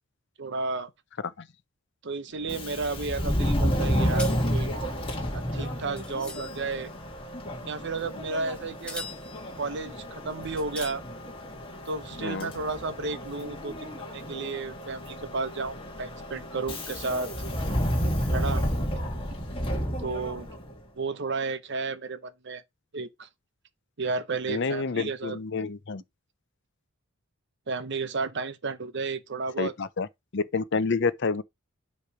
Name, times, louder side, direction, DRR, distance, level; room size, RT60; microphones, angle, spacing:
voice 1, 0.4-0.9 2.0-4.7 5.3-6.9 7.6-9.1 9.6-11.0 11.9-17.3 18.3-18.7 20.0-20.5 21.0-22.6 22.9-23.3 24.0-25.4 27.7-29.7, right 3 dB, 55° right, 0.8 m, -32 dB
Subway metro underground, 2.4-20.8, equal, 25° left, 1.8 m, -31 dB
sound 1, 4.2-6.8 8.2-8.4 8.9-9.6 10.0-10.1 10.6-10.9, left 3 dB, 5° left, 1.7 m, -41 dB
voice 2, 12.2-12.5 24.5-26.0 29.6-30.1 30.3-31.4, left 4 dB, 55° left, 0.6 m, -28 dB
9.7 x 3.2 x 4.9 m
head